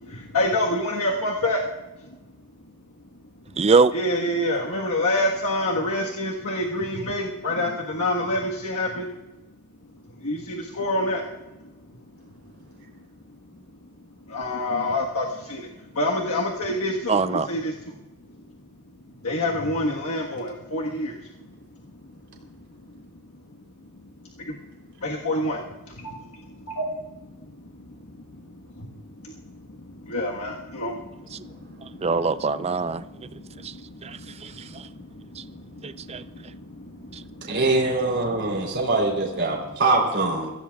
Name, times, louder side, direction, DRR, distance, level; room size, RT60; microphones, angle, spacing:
voice 1, 0.0-1.6 3.9-9.1 10.2-11.2 14.3-15.7 15.9-17.7 19.2-21.2 25.0-25.6 25.9-26.2 26.7-26.8 28.8-28.9 29.2-29.3 30.1-31.0 33.0-33.1 33.7-34.0 35.4-35.6 36.7-36.8 37.2-37.3, left 1 dB, 80° left, 1.4 m, -26 dB
voice 2, 3.6-3.9 17.1-17.5 31.3-31.4 32.0-33.0 33.6-33.7 34.0-34.5 35.4-35.5 35.8-36.2, right 4 dB, 30° right, 0.5 m, -22 dB
voice 3, 37.5-40.5, right 2 dB, 55° right, 3.4 m, -23 dB
23.5 x 15.5 x 2.4 m
head